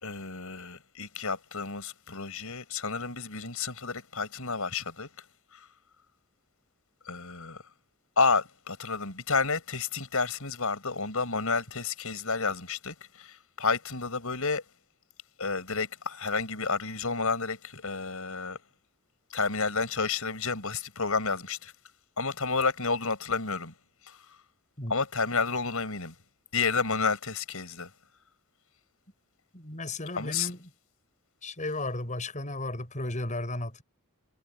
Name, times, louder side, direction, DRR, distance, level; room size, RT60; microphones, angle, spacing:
voice 1, 0.0-5.1 5.5-5.7 7.1-7.6 8.2-14.6 15.4-18.6 19.3-21.7 22.2-23.7 24.1-24.2 24.9-26.1 26.5-27.9 30.2-30.5, left 4 dB, 75° left, 5.4 m, -30 dB
voice 2, 29.5-30.7 31.4-33.8, left 2 dB, 35° left, 6.0 m, -34 dB
head